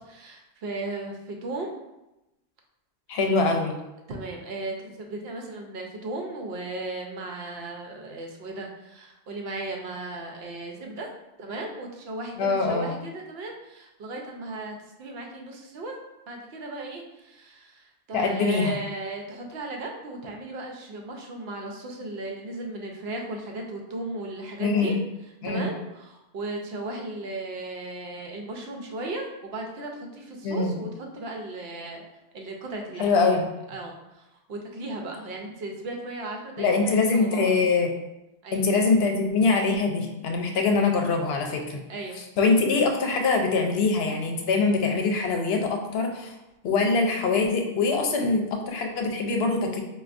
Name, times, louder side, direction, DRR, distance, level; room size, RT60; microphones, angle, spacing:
voice 1, 0.1-1.7 4.1-11.1 11.4-15.9 16.3-25.0 25.4-32.0 32.3-33.4 33.7-37.5 38.4-38.7 41.9-42.2, right 2 dB, 70° right, 1 dB, 0.8 m, -36 dB
voice 2, 3.1-3.8 12.4-12.9 18.1-18.7 24.6-24.9 25.4-25.7 30.4-30.8 33.0-33.4 36.6-37.9 38.5-41.8 42.4-46.4 46.6-49.8, left 4 dB, 75° left, 2 dB, 0.8 m, -23 dB
4.2 x 2.3 x 2.5 m, 0.94 s
omnidirectional pair, 1.1 m